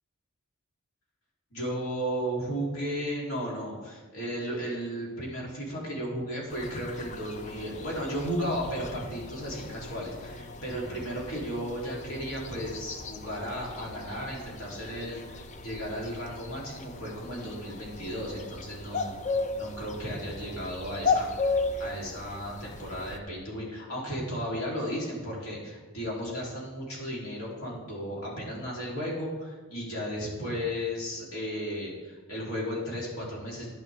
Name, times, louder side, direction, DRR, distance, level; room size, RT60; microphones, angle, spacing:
voice 1, 1.5-19.1 19.6-21.5 21.8-33.7, equal, 80° left, -4 dB, 3.6 m, -34 dB
sound 1, 6.5-23.2, left 3 dB, 35° left, 0.6 m, -36 dB
11.0 x 10.5 x 3.6 m, 1.3 s
head